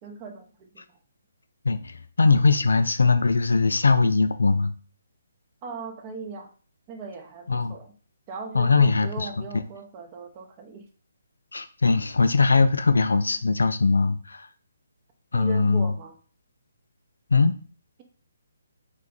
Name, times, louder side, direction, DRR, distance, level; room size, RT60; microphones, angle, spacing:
voice 1, 0.0-0.8 5.6-6.5 6.9-7.9 8.3-10.9 15.3-16.1, right 3 dB, 25° right, 3 dB, 0.6 m, -39 dB
voice 2, 1.6-4.7 7.5-7.8 8.5-9.5 11.5-14.5 15.3-15.9 17.3-17.6, left 4 dB, 70° left, 9 dB, 0.3 m, -21 dB
2.8 x 2.2 x 3.6 m, 0.40 s
figure-of-eight pair, 140°, 0 cm